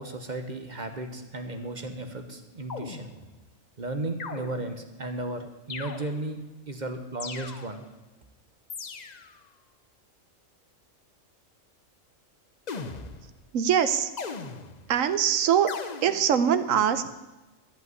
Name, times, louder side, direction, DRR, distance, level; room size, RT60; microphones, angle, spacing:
voice 1, 0.0-3.1 3.8-6.4 6.7-7.8, right 2 dB, 35° right, 6 dB, 1.1 m, -35 dB
sound 1, 2.7-3.5 4.2-4.9 5.7-6.5 7.2-8.0 8.7-9.4 12.7-13.4 14.2-15.0 15.7-16.4, left 4 dB, 40° left, 0.8 m, -39 dB
voice 2, 13.5-14.1 14.9-15.7 16.0-17.1, right 8 dB, 85° right, 12 dB, 1.2 m, -23 dB
14.0 x 5.6 x 9.4 m, 1.1 s
omnidirectional pair, 1.4 m